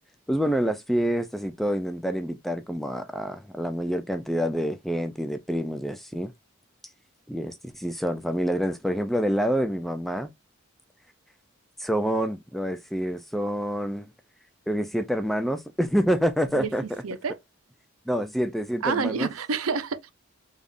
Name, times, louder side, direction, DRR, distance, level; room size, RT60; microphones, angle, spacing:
voice 1, 0.3-6.3 7.3-10.3 11.8-14.1 14.7-16.8 18.1-19.3, equal, ahead, 0.3 m, -27 dB
voice 2, 16.5-17.4 18.8-20.1, right 5 dB, 80° right, 0.6 m, -29 dB
3.6 x 3.5 x 2.5 m
head